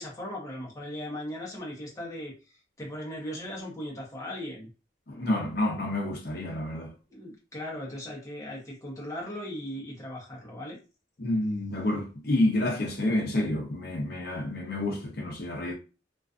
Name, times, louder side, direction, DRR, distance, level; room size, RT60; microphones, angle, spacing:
voice 1, 0.0-4.7 7.1-10.8, left 1 dB, 15° left, 0.7 m, -38 dB
voice 2, 5.1-6.9 11.2-15.7, left 1 dB, 50° left, 0.7 m, -29 dB
2.4 x 2.3 x 2.4 m
head